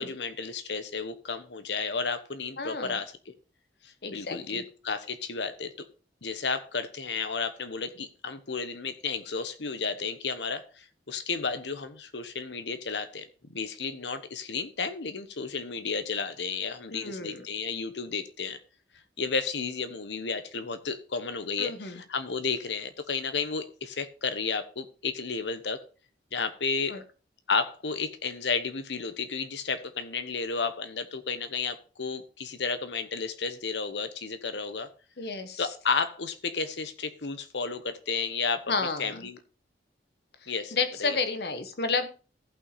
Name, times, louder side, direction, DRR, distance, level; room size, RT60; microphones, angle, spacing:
voice 1, 0.0-3.3 3.8-5.7 6.2-18.6 19.2-25.8 26.3-27.0 27.5-34.9 35.6-38.6 39.0-39.4 40.5-41.2, left 5 dB, 80° left, 11 dB, 1.1 m, -32 dB
voice 2, 2.6-3.0 4.0-4.6 16.9-17.5 21.6-22.0 26.9-27.0 35.2-35.7 38.7-39.2 40.4-42.2, left 4 dB, 60° left, 9 dB, 1.2 m, -31 dB
14.5 x 5.9 x 4.1 m, 0.35 s
head